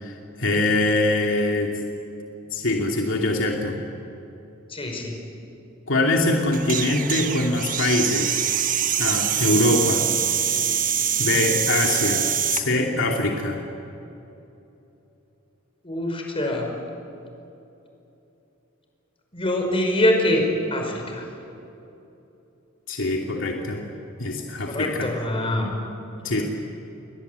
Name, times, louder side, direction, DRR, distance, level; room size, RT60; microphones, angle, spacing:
voice 1, 0.0-1.7 2.5-3.8 5.9-8.5 9.0-10.1 11.2-13.6 22.9-23.8 24.2-25.1 26.2-26.4, left 2 dB, 65° left, 0 dB, 2.7 m, -23 dB
voice 2, 4.7-5.2 15.8-16.7 19.3-20.4 20.7-21.2 24.6-25.7 26.3-26.4, left 1 dB, 25° left, 2 dB, 5.3 m, -24 dB
sound 1, 6.5-12.6, right 9 dB, 40° right, 1.3 m, -24 dB
29.5 x 23.0 x 8.2 m, 2.9 s
head